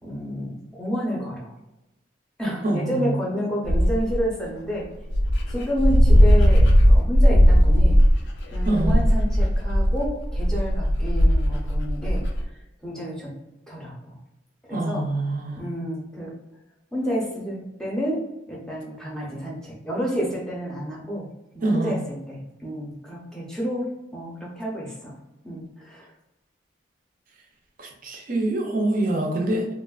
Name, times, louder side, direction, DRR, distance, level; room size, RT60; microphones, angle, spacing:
voice 1, 0.0-1.5 2.4-4.9 5.5-8.0 8.5-12.2 12.8-13.3 13.7-14.1 14.7-15.1 15.6-16.3 16.9-18.2 18.5-21.3 21.5-25.2 25.4-26.1, equal, 5° left, -4 dB, 0.6 m, -30 dB
voice 2, 2.6-3.2 8.6-9.0 14.7-15.7 21.6-22.0 27.8-29.7, right 2 dB, 45° right, 1 dB, 0.5 m, -25 dB
Dog, 3.6-4.2 4.8-4.9 5.1-12.4, equal, 70° left, 0.4 m, -17 dB
3.0 x 2.1 x 2.3 m, 0.94 s
head